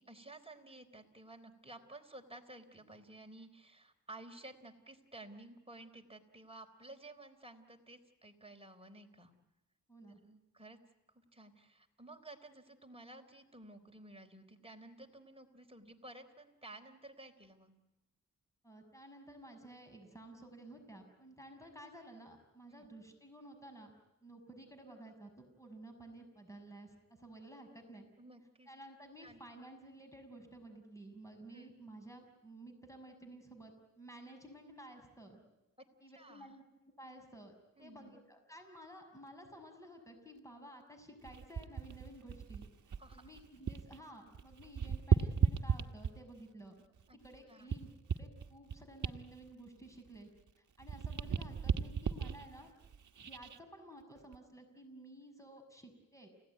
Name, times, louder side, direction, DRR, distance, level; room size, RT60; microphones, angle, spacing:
voice 1, 0.0-9.3 10.2-10.8 11.1-17.7 22.7-22.9 28.2-28.7 29.2-29.4 31.5-31.7 35.8-35.9 36.2-36.5 37.8-38.2 43.0-43.3 47.1-47.2 47.5-47.7, right 2 dB, 15° right, 4 dB, 3.8 m, -54 dB
voice 2, 9.9-10.2 18.6-23.9 24.2-28.1 28.7-35.4 36.0-36.6 37.0-37.5 37.8-42.7 43.1-46.7 47.2-50.3 50.6-52.7 53.2-56.3, right 1 dB, 10° left, 5 dB, 6.4 m, -53 dB
sound 1, 41.2-44.0 44.3-46.4 47.0-50.5 50.8-53.6 54.2-54.4, right 6 dB, 60° right, 1.3 m, -36 dB
29.5 x 17.5 x 9.4 m, 1.0 s
cardioid pair, 60°, 34 cm